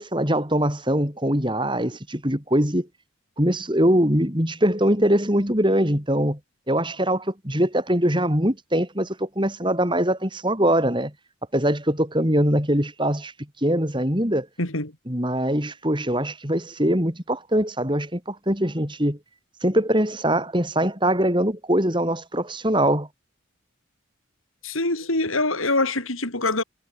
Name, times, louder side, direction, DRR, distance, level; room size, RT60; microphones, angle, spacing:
voice 1, 0.0-2.9 3.4-6.4 6.7-11.1 11.5-13.3 13.6-14.5 15.1-19.2 19.6-23.1, right 1 dB, 25° right, 6.4 m, -22 dB
voice 2, 14.6-14.9 24.6-26.6, left 2 dB, 85° left, 7.8 m, -24 dB
head